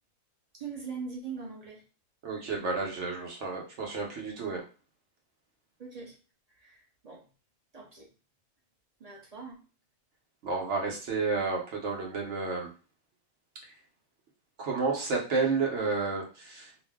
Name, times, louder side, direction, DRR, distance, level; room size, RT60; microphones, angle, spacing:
voice 1, 0.6-1.8 5.8-6.1 6.6-6.8 7.0-7.2 7.7-8.1 9.0-9.5, right 5 dB, 35° right, -2 dB, 0.7 m, -41 dB
voice 2, 2.2-4.6 10.4-12.7 14.6-16.7, right 4 dB, 60° right, -1 dB, 1.0 m, -31 dB
2.6 x 2.1 x 3.4 m, 0.34 s
omnidirectional pair, 1.4 m